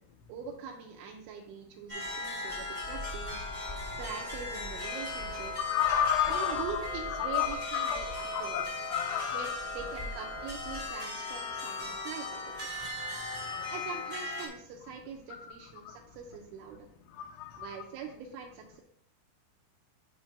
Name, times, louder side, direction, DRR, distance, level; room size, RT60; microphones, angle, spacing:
voice 1, 0.3-5.5 6.3-8.7 9.3-12.7 13.7-16.9 17.6-18.8, right 6 dB, 80° right, 1 dB, 3.0 m, -43 dB
sound 1, 1.9-14.5, left 2 dB, 50° right, 0.5 m, -37 dB
voice 2, 5.6-6.7 7.2-8.0 8.3-9.6 11.8-11.9 12.8-13.8 15.8-16.0 17.1-17.8, left 9 dB, 80° left, 2 dB, 2.8 m, -32 dB
10.5 x 5.9 x 2.2 m, 0.65 s
omnidirectional pair, 5.6 m